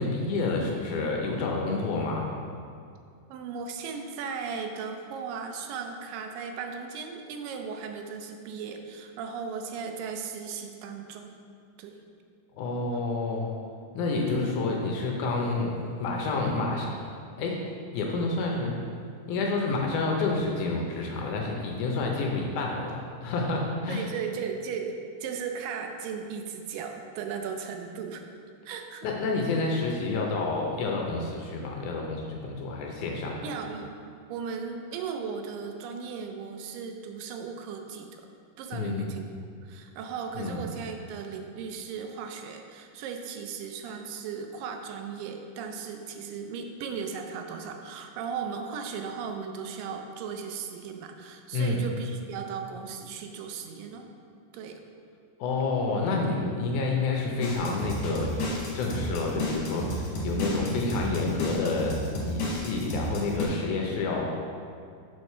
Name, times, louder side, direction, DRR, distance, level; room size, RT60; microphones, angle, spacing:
voice 1, 0.0-2.3 12.6-13.5 13.9-16.9 17.4-17.6 17.9-18.8 19.3-24.1 29.0-33.4 38.7-39.1 40.4-40.6 51.5-51.8 55.4-58.4 58.7-61.9 62.3-64.3, left 3 dB, 75° left, 0 dB, 2.0 m, -29 dB
voice 2, 3.3-11.3 11.8-12.0 14.3-14.7 15.3-15.5 23.9-28.2 28.6-29.1 33.4-34.0 34.3-38.1 38.6-39.3 39.6-54.1 54.5-54.8, right 6 dB, 80° right, 4 dB, 2.2 m, -36 dB
sound 1, 57.4-63.4, equal, 60° left, 2.1 m, -32 dB
6.5 x 4.7 x 5.5 m, 2.3 s
omnidirectional pair, 4.0 m